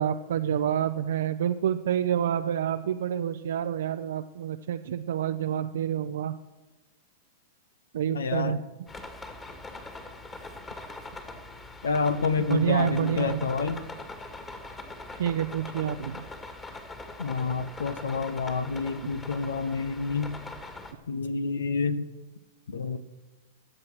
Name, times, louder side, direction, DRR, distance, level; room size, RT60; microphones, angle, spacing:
voice 1, 0.0-6.3 7.9-8.6 12.5-13.4 15.2-16.2, right 10 dB, 70° right, 7 dB, 0.6 m, -28 dB
voice 2, 8.1-8.6 11.8-13.8 17.2-20.4 21.1-22.1 22.7-23.0, left 4 dB, 80° left, 14 dB, 0.9 m, -28 dB
sound 1, 8.9-20.9, left 2 dB, 20° left, 2.3 m, -42 dB
22.5 x 7.6 x 6.2 m, 1.1 s
hypercardioid pair, 105°, 0 cm